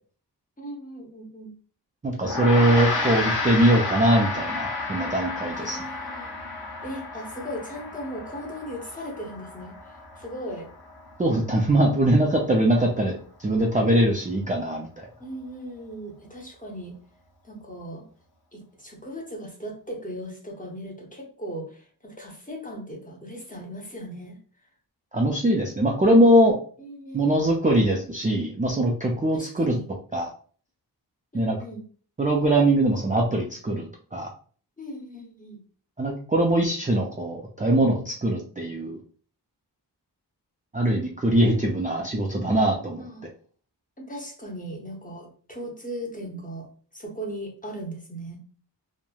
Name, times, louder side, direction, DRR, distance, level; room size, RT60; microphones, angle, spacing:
voice 1, 0.6-1.5 5.5-6.3 6.8-10.7 15.2-17.0 17.4-18.1 18.5-24.4 26.8-27.4 29.3-29.8 31.3-31.8 34.8-35.6 43.0-43.3 44.0-48.4, equal, 20° left, 0 dB, 0.7 m, -38 dB
voice 2, 2.0-5.8 11.2-13.1 13.4-15.1 25.1-26.6 27.1-29.7 30.1-30.3 31.3-31.6 32.2-34.3 36.0-39.0 40.7-43.0, right 1 dB, 20° right, -1 dB, 0.4 m, -22 dB
Gong, 2.2-11.8, left 3 dB, 60° left, 0.8 m, -31 dB
3.1 x 2.1 x 2.2 m, 0.43 s
wide cardioid pair, 65°, 42 cm